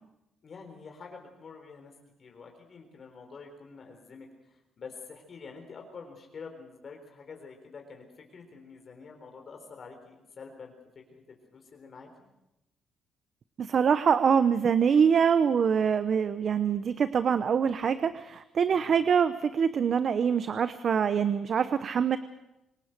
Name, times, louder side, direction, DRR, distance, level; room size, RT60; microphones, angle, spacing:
voice 1, 0.4-1.9 2.2-10.7 11.1-12.1 18.7-19.1, left 5 dB, 45° left, 3 dB, 4.1 m, -47 dB
voice 2, 13.6-22.2, right 7 dB, 50° right, 13 dB, 0.8 m, -24 dB
26.0 x 19.0 x 6.6 m, 0.91 s
cardioid pair, 110°, 0 cm